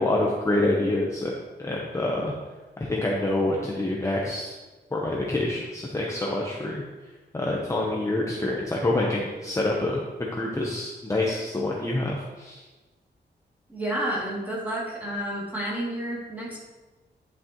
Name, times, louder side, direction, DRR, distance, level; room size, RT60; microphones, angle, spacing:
voice 1, 0.0-1.3 1.6-2.3 2.8-4.5 4.9-6.8 7.3-12.6, left 2 dB, 15° left, -2 dB, 0.9 m, -26 dB
voice 2, 13.7-16.6, right 1 dB, 10° right, -6 dB, 2.5 m, -30 dB
10.0 x 6.8 x 3.0 m, 1.2 s
wide cardioid pair, 140°, 18 cm